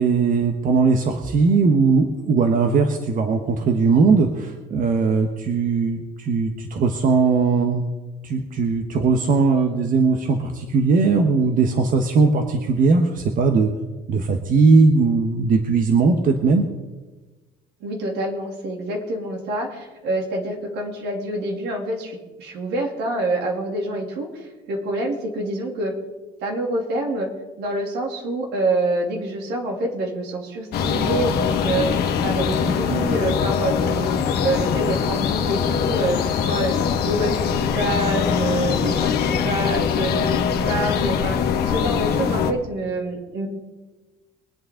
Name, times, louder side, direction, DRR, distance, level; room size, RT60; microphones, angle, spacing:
voice 1, 0.0-7.8 8.2-13.7 14.1-16.7, right 4 dB, 55° right, 5 dB, 1.3 m, -19 dB
voice 2, 17.8-25.9 26.4-27.3 27.6-34.1 34.4-40.4 40.6-43.5, right 2 dB, 80° right, 1 dB, 3.1 m, -26 dB
sound 1, 30.7-42.5, left 7 dB, 70° left, 1.4 m, -22 dB
23.0 x 8.6 x 3.9 m, 1.2 s
cardioid pair, 110°, 17 cm